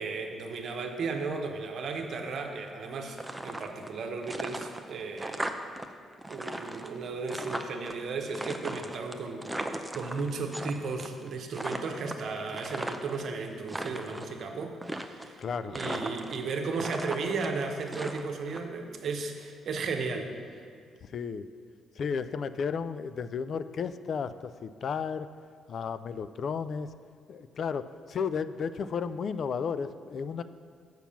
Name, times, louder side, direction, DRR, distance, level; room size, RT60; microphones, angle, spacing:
voice 1, 0.0-3.2 3.4-5.5 6.3-9.6 9.9-20.7, right 4 dB, 60° right, 4 dB, 1.0 m, -35 dB
sound 1, 3.1-4.0 4.2-5.9 6.1-7.9 8.3-10.7 11.0-11.3 11.5-13.2 13.6-14.3 14.8-15.4 15.7-16.5 16.8-18.6, right 1 dB, 10° right, 0.6 m, -37 dB
voice 2, 15.4-16.0 21.0-21.5 22.0-25.3 25.7-26.9 27.3-30.4, left 6 dB, 55° left, 13 dB, 0.3 m, -33 dB
7.2 x 5.9 x 7.1 m, 2.2 s
cardioid pair, 90°, 0 cm